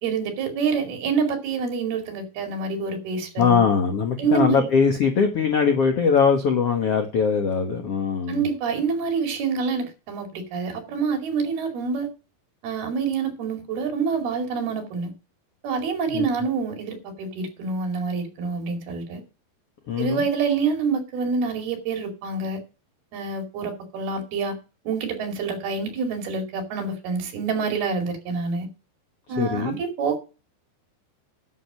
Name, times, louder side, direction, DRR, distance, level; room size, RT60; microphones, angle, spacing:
voice 1, 0.0-3.7 4.2-4.7 8.3-12.1 12.6-15.1 15.6-19.2 20.0-22.6 23.1-24.6 24.9-28.7 29.3-30.2, right 5 dB, 70° right, 4.3 m, -27 dB
voice 2, 3.4-8.4 16.1-16.2 19.9-20.2 29.4-29.8, left 6 dB, 65° left, 1.5 m, -21 dB
11.0 x 6.5 x 6.0 m
omnidirectional pair, 4.8 m